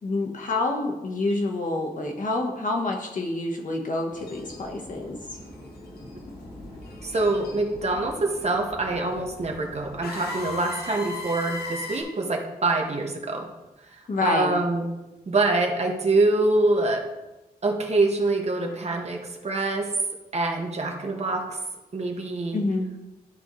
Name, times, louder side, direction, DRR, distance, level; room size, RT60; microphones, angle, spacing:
voice 1, 0.0-5.2 14.1-14.5 22.5-22.9, left 2 dB, 55° left, 1 dB, 1.1 m, -27 dB
sound 1, 4.1-12.0, left 2 dB, 85° left, 1.3 m, -39 dB
voice 2, 7.0-13.5 14.2-14.9 15.3-17.0 17.6-19.9 20.3-21.6 21.9-22.6, right 2 dB, 45° right, 1 dB, 1.1 m, -25 dB
12.0 x 4.0 x 3.1 m, 1.0 s
wide cardioid pair, 130°, 16 cm